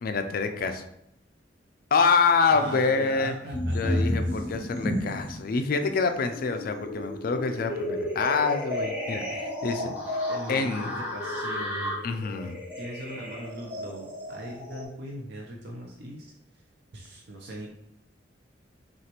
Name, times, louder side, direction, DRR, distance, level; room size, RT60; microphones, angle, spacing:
voice 1, 0.0-0.8 1.9-3.3 3.7-9.9 10.5-10.9 12.0-12.6, left 4 dB, 50° left, 7 dB, 0.4 m, -26 dB
voice 2, 2.5-4.5 10.3-12.0 12.8-16.3 16.9-17.7, right 1 dB, 65° right, -2 dB, 0.6 m, -40 dB
sound 1, 3.5-5.4 5.8-14.8, left 1 dB, 10° right, 1.4 m, -32 dB
6.0 x 2.4 x 2.9 m, 0.79 s
head